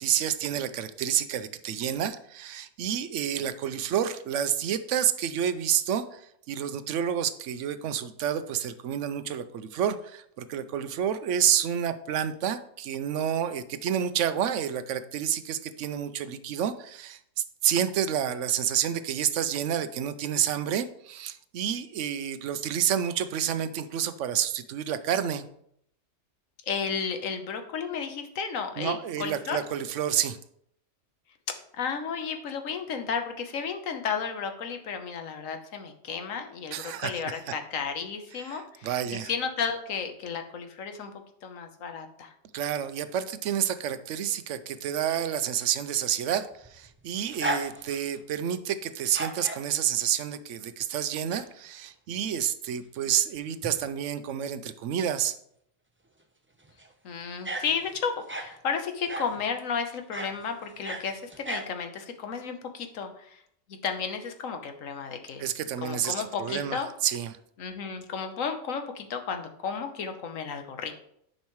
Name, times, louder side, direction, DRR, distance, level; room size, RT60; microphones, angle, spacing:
voice 1, 0.0-25.4 28.8-30.4 36.7-37.2 38.4-39.3 42.5-55.3 65.4-67.3, right 9 dB, 70° right, 12 dB, 0.9 m, -29 dB
voice 2, 26.6-29.6 31.7-41.1 41.4-42.3 57.0-63.4 63.7-65.5 65.8-66.9 67.6-70.9, left 6 dB, 90° left, 6 dB, 1.3 m, -33 dB
sound 1, 46.5-48.2 49.0-49.7 50.9-51.5 51.8-51.9 53.4-53.5 53.6-53.8 56.6-56.9 57.5-58.6 59.1-59.4 60.1-60.4 60.7-61.7, right 1 dB, 15° right, 0.5 m, -35 dB
10.5 x 5.5 x 3.1 m, 0.71 s
omnidirectional pair, 1.3 m